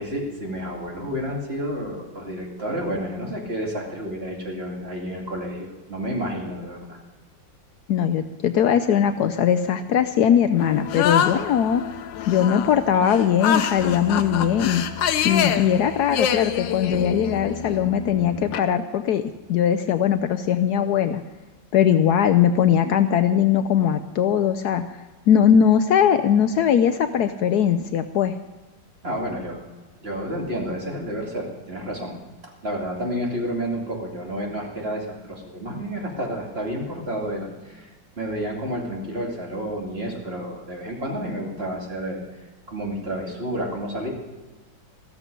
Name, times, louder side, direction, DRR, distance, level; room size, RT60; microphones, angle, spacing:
voice 1, 0.0-7.0 29.0-29.6 30.0-32.1 32.6-42.2 42.7-44.1, equal, 35° right, -1 dB, 2.7 m, -30 dB
voice 2, 7.9-11.8 12.3-14.8 15.2-19.2 19.5-21.2 21.7-24.8 25.3-28.4, left 8 dB, 70° left, 10 dB, 1.1 m, -20 dB
sound 1, 10.6-18.6, left 9 dB, 85° left, 1.5 m, -26 dB
14.5 x 13.5 x 5.3 m, 1.3 s
omnidirectional pair, 1.9 m